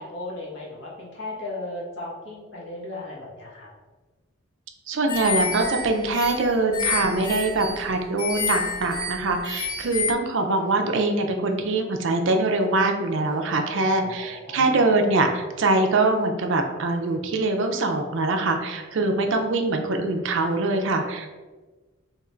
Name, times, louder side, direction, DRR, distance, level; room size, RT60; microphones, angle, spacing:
voice 1, 0.0-3.7 7.8-8.0 14.0-14.8 19.0-19.4, left 2 dB, 55° left, -6 dB, 1.2 m, -36 dB
voice 2, 4.9-21.3, right 2 dB, 60° right, 4 dB, 0.4 m, -23 dB
sound 1, 5.1-10.1, left 4 dB, 20° left, 0.3 m, -29 dB
2.9 x 2.5 x 4.2 m, 1.3 s
head